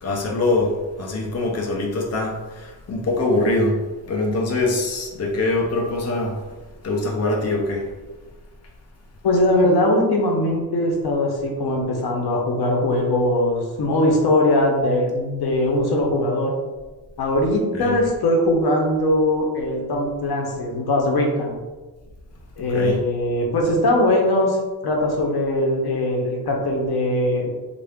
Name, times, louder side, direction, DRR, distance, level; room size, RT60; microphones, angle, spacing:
voice 1, 0.0-3.8 4.1-6.4 6.8-7.9 17.7-18.0 22.6-23.0, left 2 dB, 45° left, 0 dB, 0.6 m, -23 dB
voice 2, 9.2-16.5 17.2-21.5 22.6-24.6 24.8-27.5, left 1 dB, 85° left, 1 dB, 0.8 m, -20 dB
3.7 x 2.3 x 3.5 m, 1.2 s
wide cardioid pair, 150°, 37 cm